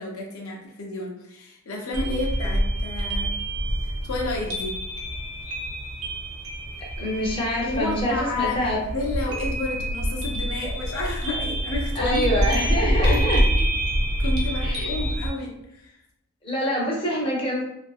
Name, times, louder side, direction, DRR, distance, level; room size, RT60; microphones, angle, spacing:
voice 1, 0.0-3.4 3.8-4.8 7.6-8.6 8.9-13.6 14.2-16.0, left 2 dB, 70° left, 0 dB, 0.5 m, -31 dB
sound 1, 1.9-15.3, equal, 70° right, 0.6 m, -26 dB
voice 2, 7.0-8.8 12.0-13.4 14.6-14.9 16.4-17.6, equal, 25° left, -3 dB, 0.6 m, -25 dB
2.6 x 2.4 x 2.3 m, 0.86 s
head